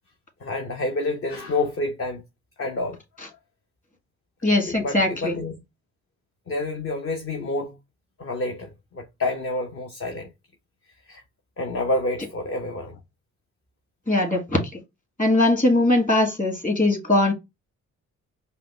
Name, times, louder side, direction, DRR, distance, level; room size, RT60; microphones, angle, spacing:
voice 1, 0.4-2.2 2.6-3.0 4.7-5.6 6.5-7.8 8.2-10.3 11.1-11.2 11.6-13.0, left 2 dB, 40° left, 0.9 m, -28 dB
voice 2, 4.4-5.3 14.1-14.8 15.2-17.3, left 2 dB, 20° left, 2.2 m, -20 dB
4.9 x 2.2 x 3.2 m
hypercardioid pair, 45°, 36 cm